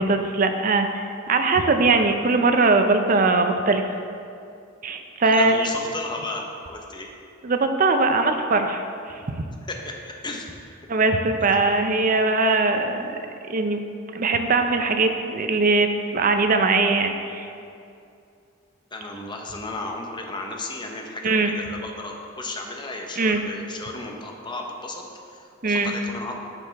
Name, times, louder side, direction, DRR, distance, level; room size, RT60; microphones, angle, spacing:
voice 1, 0.0-3.8 4.8-5.7 7.4-9.4 10.9-13.1 13.5-13.8 14.1-17.5 21.2-21.5 23.2-23.4 25.6-26.0, right 3 dB, 40° right, 6 dB, 0.5 m, -21 dB
voice 2, 5.2-7.1 9.7-10.5 18.9-26.3, left 2 dB, 20° left, 1 dB, 0.8 m, -34 dB
10.5 x 6.5 x 3.4 m, 2.5 s
head